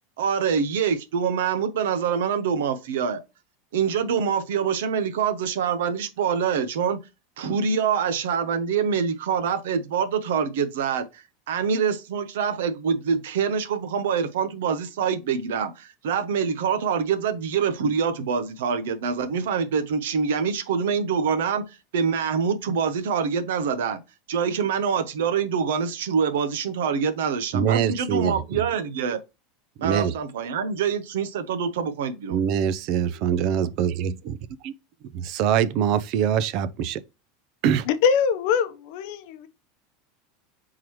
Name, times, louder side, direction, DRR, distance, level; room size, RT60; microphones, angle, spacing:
voice 1, 0.2-3.2 3.7-7.0 7.4-24.0 24.3-29.2 29.8-32.4, right 6 dB, 85° right, 0.8 m, -25 dB
voice 2, 27.5-28.6 29.8-30.1 32.3-34.4 34.6-34.7 35.1-37.0 37.6-37.9, right 9 dB, 55° right, 0.5 m, -24 dB
voice 3, 37.9-39.5, left 7 dB, 65° left, 0.7 m, -23 dB
4.6 x 3.7 x 3.0 m
supercardioid pair, 135°, 0 cm